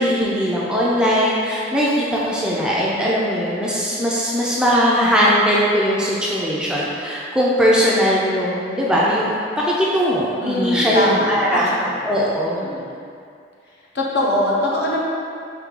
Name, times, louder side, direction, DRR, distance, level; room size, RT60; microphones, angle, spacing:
voice 1, 0.0-11.7 12.0-12.6, equal, 5° right, -6 dB, 0.4 m, -19 dB
voice 2, 10.4-12.1 12.5-13.0 13.9-15.0, left 1 dB, 60° left, -5 dB, 0.8 m, -23 dB
4.8 x 2.7 x 3.7 m, 2.4 s
head